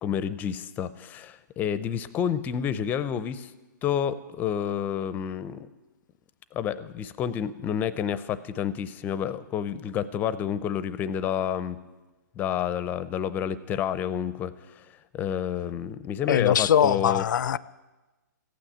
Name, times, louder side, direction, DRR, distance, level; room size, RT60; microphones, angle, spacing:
voice 1, 0.0-3.5 3.8-5.7 6.5-11.8 12.4-14.8 15.1-17.3, left 9 dB, 15° left, 16 dB, 0.5 m, -29 dB
voice 2, 16.3-17.6, left 9 dB, 70° left, 19 dB, 0.5 m, -21 dB
15.0 x 9.2 x 9.9 m, 1.2 s
hypercardioid pair, 150°, 11 cm